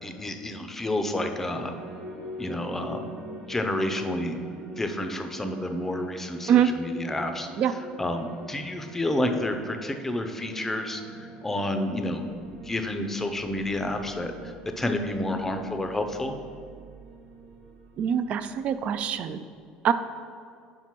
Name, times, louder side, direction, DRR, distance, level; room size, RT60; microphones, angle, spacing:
voice 1, 0.0-1.7 2.4-3.1 3.5-4.4 4.8-12.2 12.6-16.4, left 1 dB, 10° left, 6 dB, 0.5 m, -30 dB
sound 1, 1.2-19.3, right 2 dB, 75° right, 1.1 m, -44 dB
voice 2, 18.0-19.4 19.8-19.9, right 9 dB, 50° right, 12 dB, 0.3 m, -23 dB
5.1 x 4.6 x 5.8 m, 2.2 s
cardioid pair, 125°, 3 cm